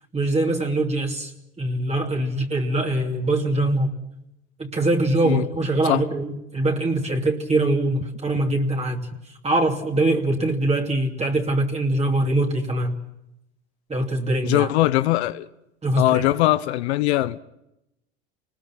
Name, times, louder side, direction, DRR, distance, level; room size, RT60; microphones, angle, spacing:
voice 1, 0.1-1.3 1.6-3.9 4.6-9.1 9.4-13.0 13.9-14.7 15.8-16.3, right 2 dB, 20° right, 2.9 m, -23 dB
voice 2, 14.4-15.5 16.0-17.4, left 16 dB, 75° left, 1.0 m, -21 dB
29.0 x 20.5 x 6.0 m
hypercardioid pair, 85°, 33 cm